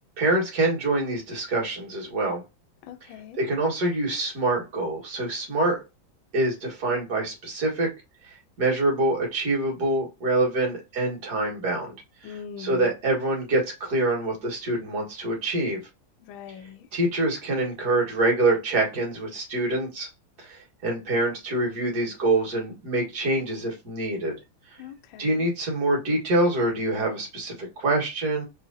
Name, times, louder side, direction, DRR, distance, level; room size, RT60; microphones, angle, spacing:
voice 1, 0.2-2.4 3.4-5.8 6.3-7.9 8.2-12.0 12.2-15.8 16.9-20.1 20.4-24.3 24.7-24.8 25.2-28.4, right 2 dB, 55° right, 2.2 m, -25 dB
voice 2, 2.8-3.4 12.2-12.9 16.3-16.9 24.8-25.5, left 7 dB, 85° left, 1.4 m, -41 dB
4.1 x 3.2 x 2.7 m
omnidirectional pair, 2.1 m